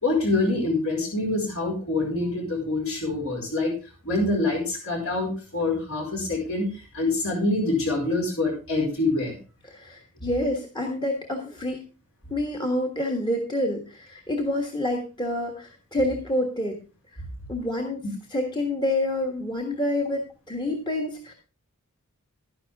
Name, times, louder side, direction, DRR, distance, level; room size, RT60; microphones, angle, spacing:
voice 1, 0.0-3.7 4.0-6.7 6.9-9.4, left 2 dB, 65° left, 0 dB, 4.9 m, -25 dB
voice 2, 9.7-11.8 12.3-16.8 17.5-18.0 18.3-21.3, left 1 dB, 20° left, 1 dB, 1.5 m, -28 dB
11.5 x 10.5 x 3.5 m, 0.32 s
head